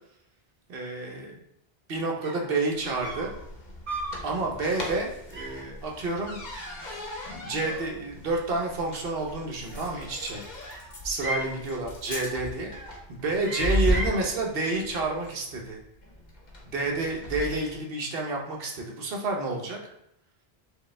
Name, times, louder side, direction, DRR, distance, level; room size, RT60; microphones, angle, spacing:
voice 1, 0.7-1.4 1.9-3.3 4.2-6.4 7.3-10.4 11.0-12.7 13.1-15.8 16.7-19.8, right 3 dB, 65° right, 0 dB, 1.0 m, -29 dB
sound 1, 2.2-2.6 3.0-3.4 3.9-4.2 4.6-4.9 5.3-5.7 6.5-7.3 7.6-8.3 9.5-10.2 10.6-11.6 12.1-12.4 12.7-13.0 13.4-14.2, right 1 dB, 40° right, 0.6 m, -38 dB
sound 2, 2.8-17.8, left 1 dB, 50° left, 0.8 m, -36 dB
4.7 x 2.2 x 3.2 m, 0.76 s
omnidirectional pair, 1.1 m